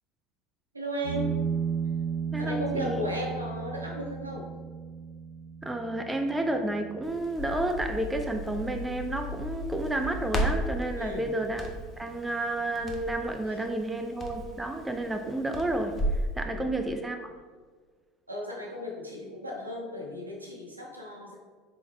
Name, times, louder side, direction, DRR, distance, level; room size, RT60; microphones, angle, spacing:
voice 1, 0.7-1.3 2.4-4.5 11.0-11.2 16.5-16.6 18.3-21.3, left 1 dB, 85° right, -1 dB, 0.7 m, -35 dB
sound 1, 1.0-10.1, right 7 dB, 70° left, 1.0 m, -35 dB
voice 2, 2.3-3.1 5.6-11.7 12.0-17.3, right 1 dB, 10° right, 5 dB, 0.4 m, -31 dB
Crackle, 7.0-16.3, equal, 25° left, 0.7 m, -35 dB
4.2 x 3.4 x 3.6 m, 1.5 s
figure-of-eight pair, 70°, 0 cm